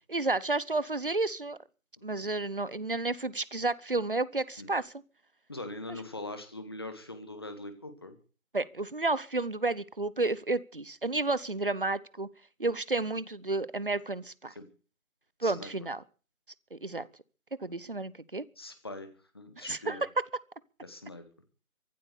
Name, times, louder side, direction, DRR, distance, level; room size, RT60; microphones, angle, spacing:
voice 1, 0.1-1.6 2.0-4.9 8.5-12.3 12.6-14.5 15.4-16.0 16.7-17.1 17.6-18.5 19.6-20.0, right 2 dB, 40° right, 0.8 m, -31 dB
voice 2, 5.5-8.1 14.5-14.7 15.4-15.7 18.6-19.1 19.3-20.1 20.8-21.2, left 2 dB, 20° left, 1.7 m, -42 dB
24.0 x 8.3 x 6.8 m
figure-of-eight pair, 165°, 42 cm